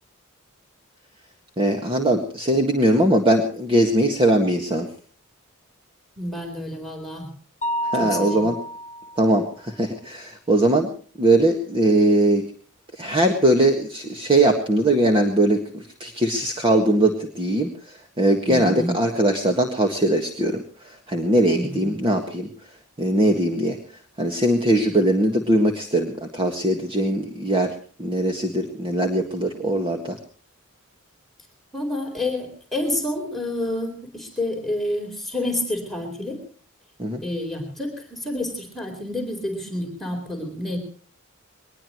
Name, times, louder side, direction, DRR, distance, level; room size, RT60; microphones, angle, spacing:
voice 1, 1.6-4.9 7.8-8.6 9.2-10.9 11.2-12.4 13.0-22.5 23.0-23.8 24.2-30.2 37.0-37.2, right 1 dB, 25° right, 3 dB, 1.8 m, -21 dB
voice 2, 6.2-7.3 8.0-8.5 18.4-19.0 21.5-21.9 31.7-36.4 37.2-40.8, left 1 dB, ahead, 1 dB, 4.1 m, -29 dB
Mallet percussion, 7.6-9.4, equal, 35° left, 0.7 m, -29 dB
22.0 x 20.5 x 3.1 m, 0.41 s
head